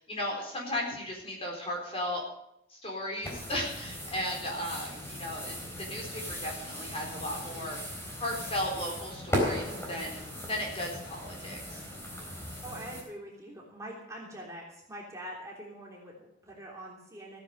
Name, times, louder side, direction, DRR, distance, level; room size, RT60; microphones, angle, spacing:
voice 1, 0.0-2.2 2.7-11.8, left 1 dB, 30° left, 0 dB, 4.2 m, -36 dB
sound 1, 3.2-13.0, equal, 15° left, 3.8 m, -37 dB
voice 2, 12.6-17.4, right 1 dB, 15° right, -2 dB, 3.2 m, -44 dB
16.0 x 9.8 x 6.6 m, 0.77 s
head